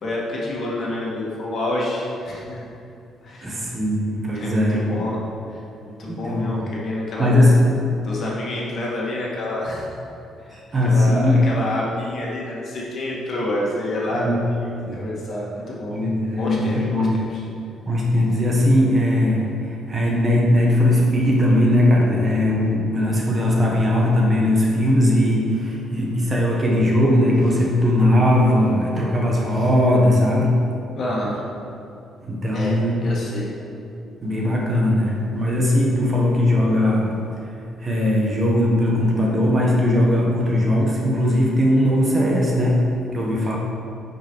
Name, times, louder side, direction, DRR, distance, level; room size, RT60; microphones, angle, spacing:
voice 1, 0.0-2.6 3.2-3.6 4.3-5.2 5.5-7.3 8.0-9.9 10.4-14.6 15.0-16.0 16.4-17.4 31.0-31.4 32.5-33.5, left 1 dB, 40° left, -4 dB, 2.0 m, -28 dB
voice 2, 3.4-5.1 6.1-6.6 7.2-7.9 10.5-11.5 14.1-14.4 14.8-15.0 15.9-17.3 17.8-30.6 32.2-33.0 34.2-43.6, left 1 dB, 25° right, -2 dB, 1.2 m, -19 dB
10.0 x 5.5 x 4.7 m, 2.6 s
cardioid pair, 155°, 0 cm